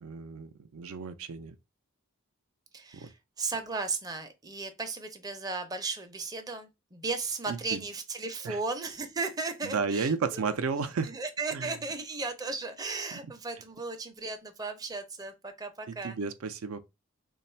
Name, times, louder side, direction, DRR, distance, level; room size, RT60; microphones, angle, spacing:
voice 1, 0.0-1.6 2.9-3.1 7.5-7.8 8.4-8.6 9.6-11.1 11.5-11.8 15.9-16.8, right 5 dB, 80° right, 0.4 m, -33 dB
voice 2, 2.7-10.6 11.0-16.2, right 3 dB, 20° right, 0.5 m, -36 dB
3.2 x 2.3 x 4.2 m
head